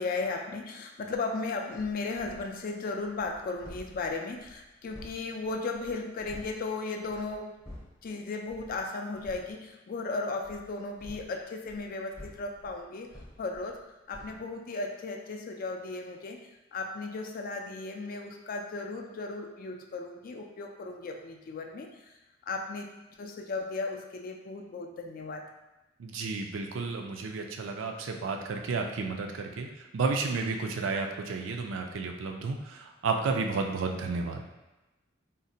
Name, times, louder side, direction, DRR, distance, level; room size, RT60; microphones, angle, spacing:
voice 1, 0.0-7.5 8.0-13.1 13.4-13.8 14.1-16.4 16.7-22.1 22.5-22.9 23.2-25.4, left 3 dB, 45° left, 3 dB, 0.3 m, -35 dB
sound 1, 1.7-2.6 3.0-6.6 7.0-8.1 8.5-8.8 9.1-9.5 10.4-13.9 14.1-14.4, left 1 dB, 15° left, 0.7 m, -50 dB
voice 2, 26.0-34.4, right 4 dB, 70° right, 3 dB, 0.4 m, -32 dB
3.8 x 2.1 x 2.6 m, 1.1 s
head